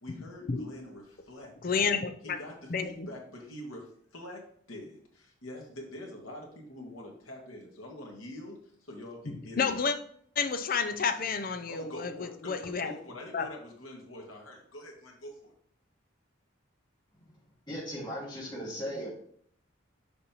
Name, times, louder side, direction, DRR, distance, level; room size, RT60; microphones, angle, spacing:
voice 1, 0.0-1.5 2.2-9.7 11.7-15.5, left 1 dB, 85° left, 1.8 m, -45 dB
voice 2, 1.6-2.4 2.7-3.1 9.3-9.9 10.4-12.9 13.3-13.5, left 5 dB, 45° left, 0.5 m, -30 dB
voice 3, 17.7-19.1, equal, 20° left, 2.0 m, -37 dB
6.8 x 5.3 x 3.0 m
head